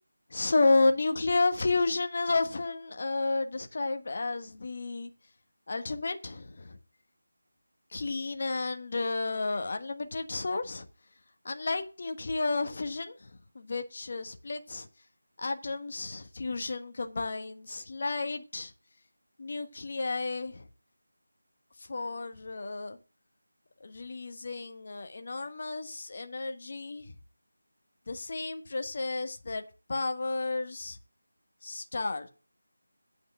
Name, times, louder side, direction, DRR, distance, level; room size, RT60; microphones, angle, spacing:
voice 1, 0.3-5.1 5.7-6.8 7.9-10.9 11.4-13.3 13.5-14.9 15.4-18.7 19.4-20.6 21.9-23.0 23.8-27.1 28.1-29.6 29.9-31.0 31.6-32.3, left 3 dB, 45° left, 1.3 m, -31 dB
9.1 x 5.3 x 7.6 m
figure-of-eight pair, 170°, 0 cm